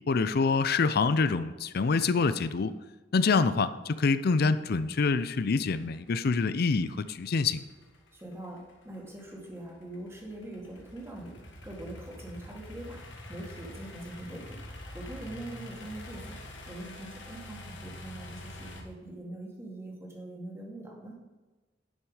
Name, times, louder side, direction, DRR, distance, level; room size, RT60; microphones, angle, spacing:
voice 1, 0.1-2.7 3.1-7.6, left 4 dB, 55° left, 14 dB, 0.5 m, -26 dB
sound 1, 4.3-18.8, left 1 dB, 80° left, 1.7 m, -46 dB
voice 2, 8.1-13.0 13.3-14.6 14.9-16.4 16.7-21.2, right 1 dB, 15° right, -2 dB, 2.3 m, -43 dB
11.0 x 6.3 x 4.9 m, 1.2 s
head